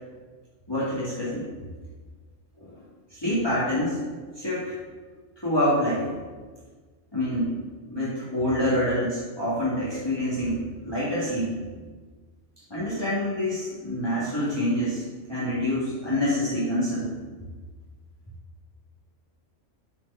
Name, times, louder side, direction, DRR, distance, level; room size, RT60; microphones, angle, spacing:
voice 1, 0.7-1.5 2.6-2.7 3.1-4.0 4.4-4.7 5.4-6.1 7.1-7.6 7.9-11.5 12.7-15.0 15.3-17.1, left 1 dB, 20° left, -9 dB, 2.0 m, -26 dB
7.6 x 5.1 x 5.5 m, 1.4 s
omnidirectional pair, 1.3 m